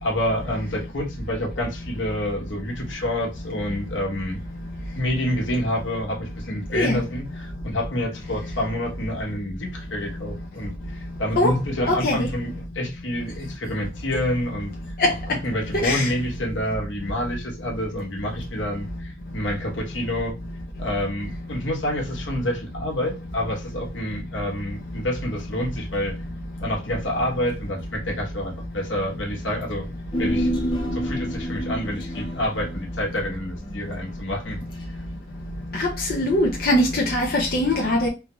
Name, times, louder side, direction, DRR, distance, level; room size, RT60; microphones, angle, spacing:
voice 1, 0.0-4.4 4.9-14.7 15.4-20.3 20.8-26.1 26.6-34.6, left 1 dB, 85° left, 1.3 m, -28 dB
voice 2, 11.9-12.3 15.0-15.1 15.8-16.1 35.7-38.1, left 1 dB, 50° left, 0.7 m, -21 dB
Human voice, 30.1-34.7 35.0-35.1, equal, 25° left, 0.8 m, -29 dB
3.9 x 2.4 x 3.0 m
head